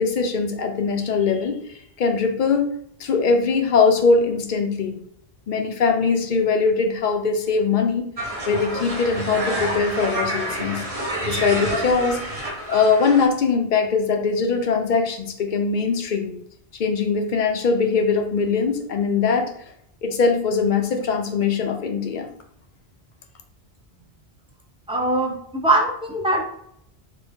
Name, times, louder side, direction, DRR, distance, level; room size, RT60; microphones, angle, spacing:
voice 1, 0.0-1.6 2.0-2.7 3.0-4.9 5.5-8.0 8.5-10.8 11.3-12.2 12.7-16.3 16.8-19.5 20.0-22.3, left 5 dB, 60° left, 5 dB, 0.6 m, -21 dB
sound 1, 8.2-13.3, right 1 dB, 40° right, 0.8 m, -28 dB
voice 2, 24.9-26.6, right 1 dB, 5° right, -1 dB, 0.4 m, -22 dB
3.4 x 2.1 x 3.4 m, 0.71 s
omnidirectional pair, 1.1 m